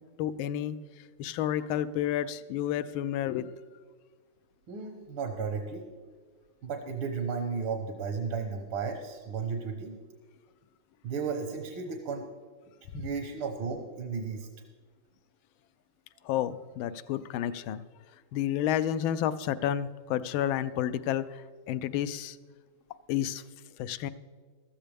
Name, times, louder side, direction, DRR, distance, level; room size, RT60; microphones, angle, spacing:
voice 1, 0.2-3.5 12.9-13.1 16.2-17.8 18.3-22.4 23.1-23.4 23.8-24.1, left 11 dB, 80° left, 15 dB, 1.3 m, -31 dB
voice 2, 4.7-5.8 6.6-10.0 11.0-12.2 12.9-14.5, right 5 dB, 75° right, 4 dB, 1.9 m, -34 dB
14.5 x 13.5 x 3.4 m, 1.5 s
omnidirectional pair, 2.3 m